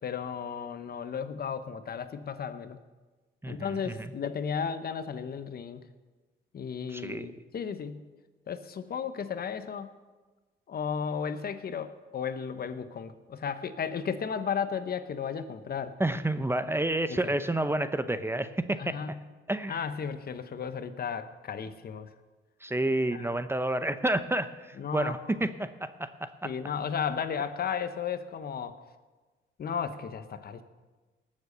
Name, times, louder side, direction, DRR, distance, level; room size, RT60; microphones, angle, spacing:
voice 1, 0.0-2.8 3.5-5.8 6.5-8.0 8.5-9.9 10.7-16.0 17.1-17.3 18.8-19.2 19.7-22.1 23.1-23.3 24.8-25.5 26.4-28.8 29.6-30.6, left 7 dB, 50° left, 11 dB, 1.0 m, -34 dB
voice 2, 3.4-4.1 6.9-7.3 16.0-19.0 19.5-19.8 22.6-26.5, right 1 dB, 10° right, 11 dB, 0.7 m, -30 dB
18.5 x 7.5 x 6.7 m, 1.3 s
cardioid pair, 90°, 20 cm